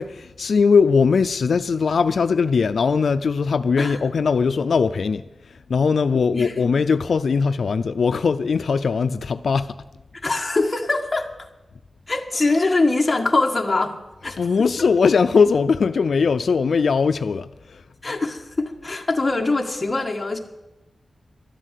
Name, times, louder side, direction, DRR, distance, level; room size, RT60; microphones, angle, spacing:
voice 1, 0.0-9.8 14.4-17.8, left 5 dB, 75° left, 0.5 m, -20 dB
voice 2, 6.3-6.8 10.2-11.5 12.1-14.0 14.2-14.4 18.0-20.4, left 2 dB, 20° left, 1.6 m, -23 dB
12.5 x 11.0 x 8.3 m
wide cardioid pair, 140°, 0 cm